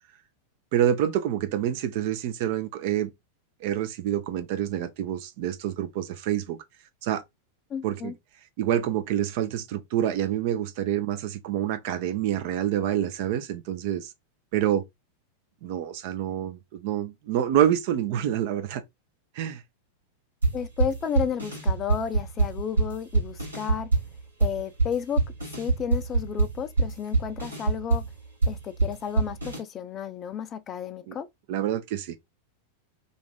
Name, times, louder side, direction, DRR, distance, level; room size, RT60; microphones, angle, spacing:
voice 1, 0.7-3.1 3.6-6.6 7.0-7.2 7.8-8.1 8.6-14.1 14.5-14.8 15.6-18.8 19.3-19.6 31.1-31.2 31.5-32.2, right 11 dB, 50° right, 0.5 m, -27 dB
voice 2, 7.7-8.1 20.5-23.9 24.4-25.2 25.6-28.1 28.5-31.3, left 8 dB, 25° left, 0.4 m, -32 dB
sound 1, 20.4-29.6, right 3 dB, 80° right, 1.5 m, -25 dB
2.6 x 2.5 x 3.3 m
figure-of-eight pair, 90°, 0 cm